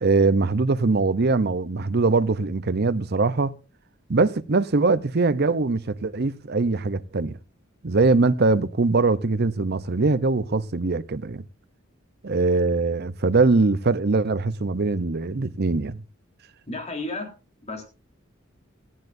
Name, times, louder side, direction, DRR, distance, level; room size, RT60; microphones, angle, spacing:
voice 1, 0.0-3.5 4.1-7.4 7.8-11.4 12.2-16.0, right 3 dB, 55° right, 0.8 m, -22 dB
voice 2, 16.7-17.3 17.6-17.8, left 2 dB, 35° left, 3.9 m, -32 dB
18.5 x 14.0 x 2.7 m
head